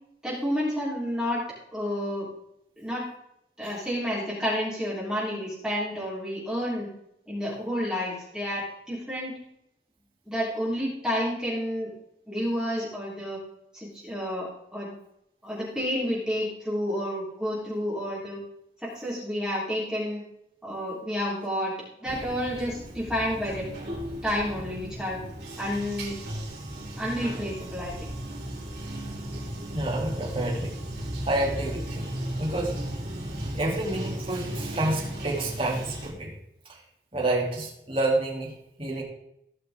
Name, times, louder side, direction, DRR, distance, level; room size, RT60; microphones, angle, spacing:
voice 1, 0.2-1.4 1.7-2.3 2.8-3.1 3.6-6.9 7.3-9.3 10.3-11.9 12.3-13.4 13.7-14.9 15.4-18.4 18.8-20.2 20.6-21.7 22.0-23.7 24.2-25.2 25.6-26.2 27.0-28.1, equal, 5° right, -8 dB, 3.6 m, -30 dB
Bathtub (filling or washing), 22.0-36.1, right 1 dB, 70° right, 3.6 m, -35 dB
voice 2, 29.7-30.7 31.3-32.1 32.4-32.7 33.5-36.3 36.7-36.8 37.1-39.0, right 2 dB, 30° right, -3 dB, 2.7 m, -29 dB
17.0 x 5.9 x 3.6 m, 0.77 s
head